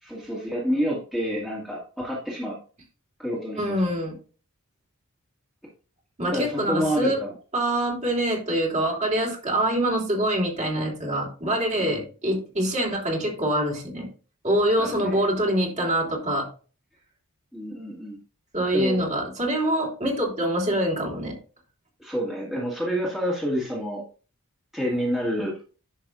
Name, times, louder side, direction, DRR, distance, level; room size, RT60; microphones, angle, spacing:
voice 1, 0.0-2.6 3.2-3.6 6.3-7.3 11.8-11.9 14.8-15.2 17.5-18.2 18.7-19.1 22.0-24.0 24.7-25.6, equal, ahead, -5 dB, 2.1 m, -28 dB
voice 2, 3.6-4.1 6.2-7.2 7.5-14.1 14.4-16.5 18.5-21.4, right 1 dB, 35° right, -1 dB, 3.2 m, -25 dB
11.0 x 6.6 x 2.5 m, 0.37 s
head